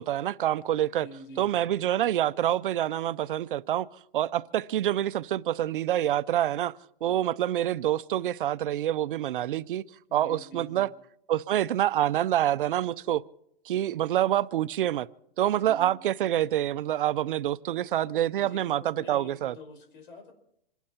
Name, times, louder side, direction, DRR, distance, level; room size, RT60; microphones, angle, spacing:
voice 1, 0.0-1.1 1.4-3.9 4.1-6.7 7.0-9.8 10.1-10.9 11.3-13.2 13.7-15.1 15.4-19.5, right 12 dB, 60° right, 0.5 m, -26 dB
voice 2, 1.0-1.7 10.1-10.9 15.5-16.1 18.4-20.3, left 1 dB, 60° left, 5.1 m, -47 dB
27.5 x 11.5 x 4.3 m
hypercardioid pair, 165°, 30 cm